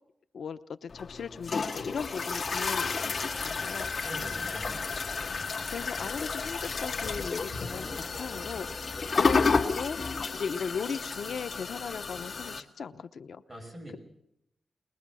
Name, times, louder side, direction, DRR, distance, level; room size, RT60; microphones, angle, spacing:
voice 1, 0.3-3.9 5.7-13.4, left 6 dB, 85° left, 11 dB, 0.8 m, -38 dB
sound 1, 0.9-12.6, left 4 dB, 55° left, 2.0 m, -31 dB
Sliding door, 2.0-9.8, left 2 dB, 30° left, 4.7 m, -47 dB
voice 2, 4.0-4.8 13.5-14.0, equal, 25° right, 1 dB, 6.6 m, -43 dB
22.0 x 21.0 x 6.3 m, 0.82 s
wide cardioid pair, 130°, 0 cm